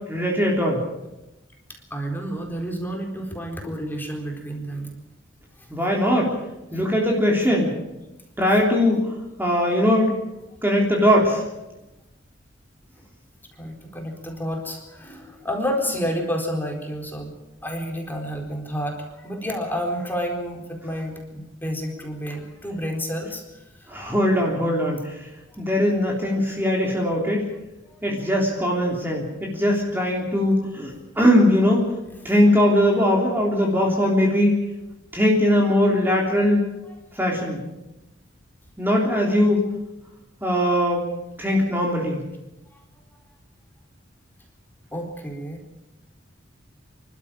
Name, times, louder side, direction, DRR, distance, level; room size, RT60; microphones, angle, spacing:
voice 1, 0.1-0.8 5.7-6.3 6.7-7.7 8.4-9.0 9.4-10.1 10.6-11.4 23.9-25.0 25.6-27.4 28.0-31.8 32.3-34.6 35.1-36.7 37.2-37.6 38.8-39.7 40.4-41.0 41.4-42.2, left 1 dB, 10° right, -2 dB, 3.4 m, -20 dB
voice 2, 1.9-4.9 13.6-17.3 17.6-23.4 23.8-23.9 27.8-28.2 37.1-37.2 42.7-42.8 44.9-45.6, equal, 10° left, 1 dB, 4.2 m, -30 dB
27.0 x 13.0 x 8.8 m, 0.97 s
head